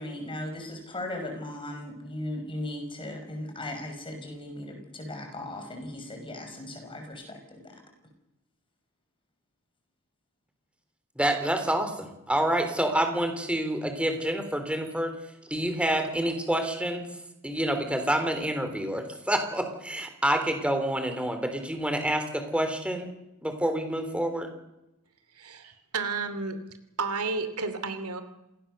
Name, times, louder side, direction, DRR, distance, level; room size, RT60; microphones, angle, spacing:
voice 1, 0.0-7.7, left 1 dB, 25° left, 4 dB, 6.1 m, -37 dB
voice 2, 11.2-15.1 15.5-17.1 17.4-23.1 23.4-24.5, right 1 dB, 5° right, 6 dB, 3.6 m, -28 dB
voice 3, 25.3-26.6 27.0-28.2, right 4 dB, 85° right, 10 dB, 2.9 m, -32 dB
27.0 x 19.0 x 6.8 m, 0.92 s
head